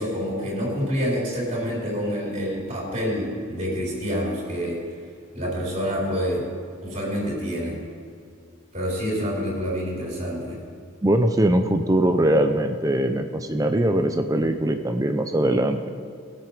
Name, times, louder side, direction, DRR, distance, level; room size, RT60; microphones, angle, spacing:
voice 1, 0.0-4.8 5.3-6.5 6.8-7.8 8.7-10.6, equal, 35° right, -4 dB, 4.1 m, -27 dB
voice 2, 11.0-15.9, right 1 dB, 15° right, 7 dB, 0.5 m, -21 dB
21.0 x 7.6 x 5.1 m, 2.3 s
head